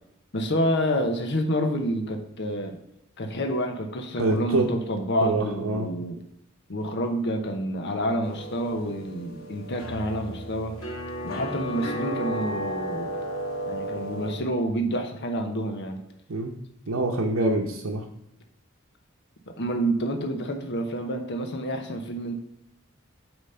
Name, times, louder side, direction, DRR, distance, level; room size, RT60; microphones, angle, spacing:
voice 1, 0.3-2.8 3.2-6.2 6.7-10.8 11.2-13.1 13.7-16.0 19.6-22.4, equal, 55° left, 5 dB, 0.9 m, -28 dB
voice 2, 4.2-4.7 5.2-5.9 16.3-16.5 16.9-18.0, right 2 dB, 70° right, -2 dB, 0.8 m, -25 dB
sound 1, 8.2-14.4, equal, 85° left, 1.4 m, -34 dB
8.3 x 3.1 x 5.5 m, 0.80 s
head